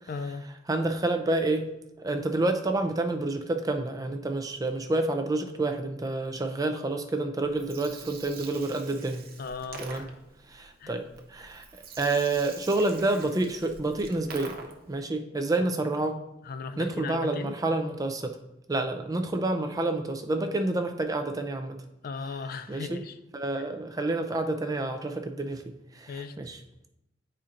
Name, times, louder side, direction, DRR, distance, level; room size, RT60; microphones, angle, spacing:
voice 1, 0.1-0.4 9.4-10.1 10.8-11.0 15.6-15.7 16.4-17.6 22.0-23.2 26.1-26.4, left 4 dB, 50° left, 10 dB, 0.3 m, -37 dB
voice 2, 0.7-1.7 2.0-9.3 9.8-10.0 10.5-11.0 11.3-11.6 12.0-14.6 14.9-16.2 16.8-18.4 18.7-21.8 22.7-23.0 23.3-26.6, right 2 dB, 20° right, 6 dB, 0.4 m, -28 dB
Gurgling, 7.4-15.0, right 4 dB, 50° right, 0.7 m, -45 dB
9.5 x 4.3 x 2.5 m, 0.87 s
head